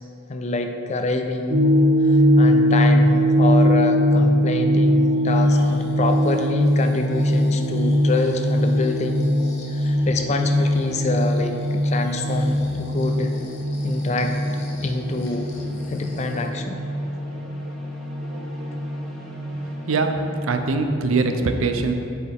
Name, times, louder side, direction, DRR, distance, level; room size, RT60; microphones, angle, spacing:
voice 1, 0.3-1.7 2.0-9.3 9.7-13.3 13.8-14.3 14.8-15.5 15.9-16.8, left 2 dB, 35° left, 5 dB, 0.4 m, -26 dB
sound 1, 1.5-20.9, equal, 45° right, 0.8 m, -21 dB
Breathing, 5.1-16.6 17.0-17.1, left 1 dB, 65° left, 0.9 m, -43 dB
sound 2, 12.8-20.4, equal, ahead, 0.7 m, -45 dB
voice 2, 20.4-21.9, right 3 dB, 85° right, 6 dB, 0.5 m, -22 dB
7.9 x 4.7 x 3.5 m, 2.6 s
head